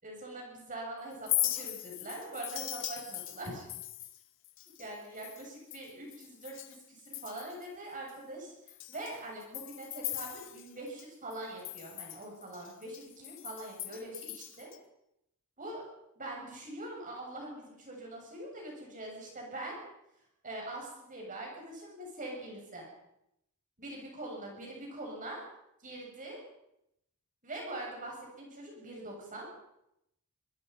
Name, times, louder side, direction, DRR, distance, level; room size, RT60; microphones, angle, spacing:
voice 1, 0.0-3.7 4.8-14.7 15.6-15.9 16.2-19.8 20.4-22.9 23.8-25.4 25.8-26.4 27.4-29.5, right 1 dB, 40° right, 0 dB, 7.4 m, -43 dB
Chink clink, 1.1-6.8 7.1-7.7 8.1-8.2 8.7-11.0 11.3-14.8, left 14 dB, 60° left, 2.0 m, -39 dB
26.0 x 23.0 x 5.6 m, 0.81 s
head